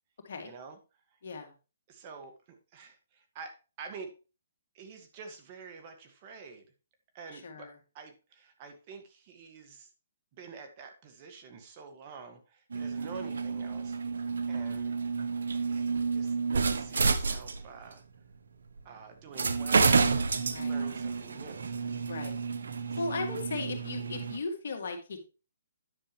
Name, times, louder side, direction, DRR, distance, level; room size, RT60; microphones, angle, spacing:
voice 1, 0.4-0.8 1.9-2.3 2.7-4.1 4.7-6.6 7.1-7.7 7.9-9.9 10.3-14.0 14.5-14.9 15.7-18.0 18.8-20.1 20.6-21.7 23.0-23.2, right 5 dB, 35° right, 6 dB, 1.8 m, -47 dB
voice 2, 1.2-1.5 7.3-7.7 20.5-20.8 22.1-22.3 23.0-25.2, left 3 dB, 65° left, 4 dB, 2.3 m, -37 dB
sound 1, 12.7-17.9 18.8-18.9 19.4-24.4, right 4 dB, 80° right, 0.9 m, -30 dB
9.9 x 6.7 x 3.2 m, 0.31 s
hypercardioid pair, 145°, 0 cm